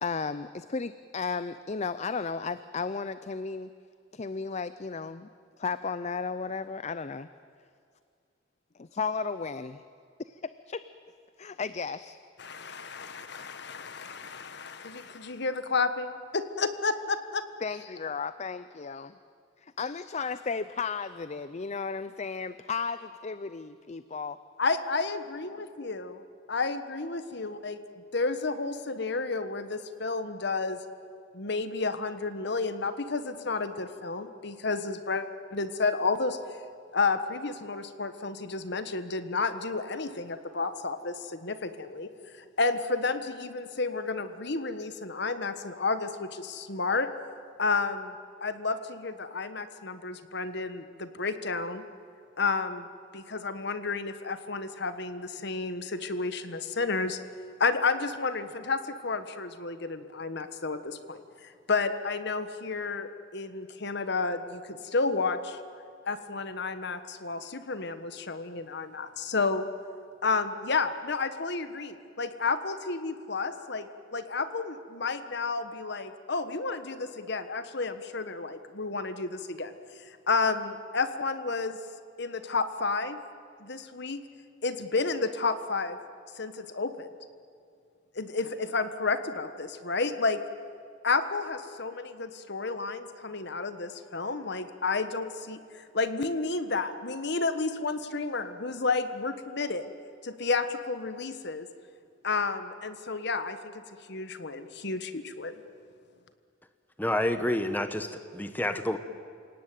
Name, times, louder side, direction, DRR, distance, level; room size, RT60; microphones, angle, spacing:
voice 1, 0.0-3.7 4.1-5.3 5.6-7.3 8.8-9.8 10.3-10.4 10.7-10.8 11.4-12.2 17.6-19.2 19.6-24.4, left 5 dB, 35° left, 13 dB, 0.5 m, -34 dB
voice 2, 12.4-17.4 24.6-26.2 26.5-27.8 28.1-30.8 31.3-36.4 36.9-42.1 42.4-47.1 47.6-48.1 48.4-51.8 52.4-52.9 53.1-57.2 57.6-65.6 66.1-69.6 70.2-81.8 82.2-83.2 83.6-84.2 84.6-86.0 86.3-87.1 88.1-90.4 91.0-99.9 100.2-101.7 102.2-103.7 104.1-105.5, left 4 dB, 60° left, 10 dB, 1.4 m, -31 dB
voice 3, 107.0-109.0, left 1 dB, 10° left, 9 dB, 1.1 m, -29 dB
28.5 x 18.0 x 9.2 m, 2.3 s
head